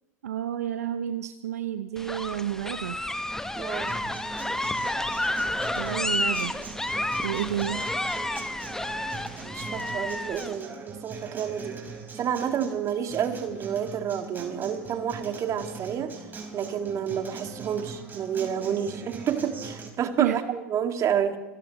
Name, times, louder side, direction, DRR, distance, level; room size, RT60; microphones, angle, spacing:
voice 1, 0.2-3.0 5.8-6.6 7.2-7.9 20.2-20.4, right 11 dB, 75° right, 10 dB, 0.7 m, -30 dB
sound 1, 2.0-10.5, left 1 dB, 5° left, 0.9 m, -30 dB
voice 2, 3.6-4.0 9.5-11.8 12.2-16.1 16.5-21.4, right 8 dB, 40° right, 6 dB, 2.0 m, -29 dB
Acoustic guitar, 3.9-19.9, right 4 dB, 25° right, 4.7 m, -41 dB
27.5 x 16.0 x 3.0 m, 1.0 s
hypercardioid pair, 80°, 8 cm